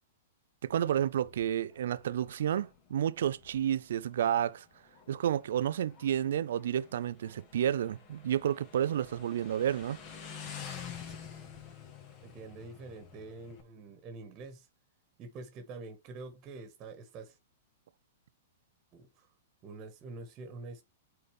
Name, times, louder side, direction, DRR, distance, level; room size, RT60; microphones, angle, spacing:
voice 1, 0.6-4.6 5.1-10.0, right 10 dB, 70° right, 0.5 m, -30 dB
Motorcycle, 0.7-13.6, left 7 dB, 40° left, 2.4 m, -49 dB
voice 2, 12.2-14.7 15.2-17.4 18.9-19.3 19.6-20.8, right 3 dB, 35° right, 1.6 m, -46 dB
8.8 x 4.1 x 3.5 m
hypercardioid pair, 125°, 0 cm